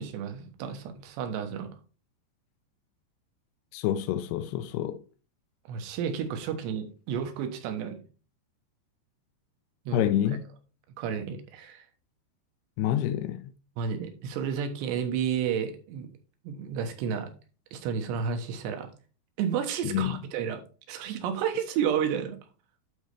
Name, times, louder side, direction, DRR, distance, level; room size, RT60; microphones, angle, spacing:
voice 1, 0.0-1.7 5.7-8.0 9.9-10.1 11.0-11.9 13.8-16.1 16.4-17.3 17.7-18.9 19.4-20.6 20.9-22.4, right 7 dB, 85° right, 3.3 m, -31 dB
voice 2, 3.7-5.0 9.9-10.4 12.8-13.5 19.8-20.2, left 11 dB, 80° left, 2.5 m, -27 dB
12.0 x 4.3 x 3.4 m
omnidirectional pair, 4.9 m